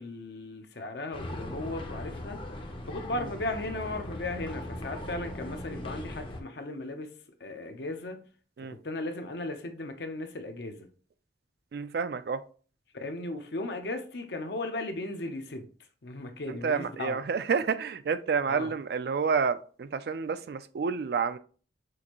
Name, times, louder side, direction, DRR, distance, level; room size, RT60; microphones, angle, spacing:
voice 1, 0.0-2.4 2.9-7.1 7.4-8.2 8.7-10.9 12.9-15.7 16.0-17.2 18.5-18.7, left 2 dB, 65° left, 0.7 m, -36 dB
sound 1, 1.1-6.4, left 1 dB, 30° left, 0.6 m, -39 dB
voice 2, 11.7-12.4 16.5-21.4, right 5 dB, 60° right, 0.3 m, -29 dB
6.3 x 2.6 x 2.9 m
head